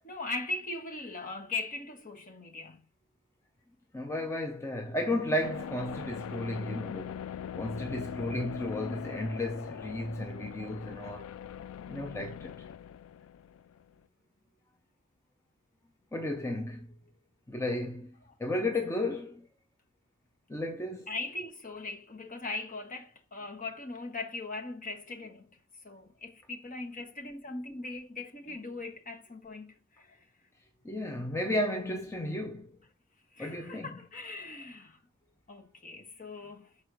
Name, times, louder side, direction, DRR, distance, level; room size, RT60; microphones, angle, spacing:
voice 1, 0.0-2.8 18.3-18.4 21.1-25.5 25.8-30.2 33.3-35.0 35.5-36.7, left 3 dB, 40° left, 1.5 m, -40 dB
voice 2, 3.9-7.3 7.5-11.3 11.9-12.5 16.1-16.9 17.5-19.5 20.5-21.1 30.8-32.8 33.4-34.0, left 1 dB, 15° left, 0.7 m, -33 dB
sound 1, 5.4-14.0, left 8 dB, 70° left, 0.3 m, -41 dB
6.6 x 4.2 x 6.2 m
head